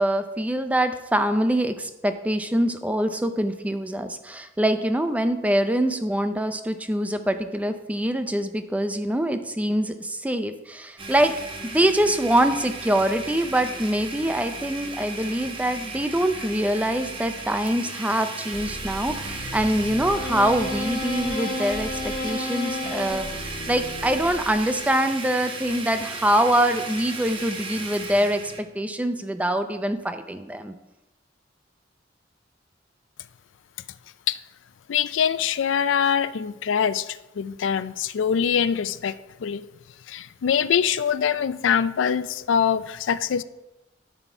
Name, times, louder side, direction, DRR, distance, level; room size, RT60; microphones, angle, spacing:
voice 1, 0.0-11.3 11.6-28.4 28.7-30.7, right 1 dB, 10° right, 9 dB, 0.4 m, -24 dB
Domestic sounds home sounds, 11.0-28.6, right 3 dB, 30° right, 0.9 m, -35 dB
sound 1, 18.5-24.8, left 2 dB, 50° left, 1.7 m, -33 dB
voice 2, 34.9-39.6 40.1-43.4, left 7 dB, 80° left, 15 dB, 0.4 m, -24 dB
12.5 x 4.2 x 4.4 m, 0.99 s
head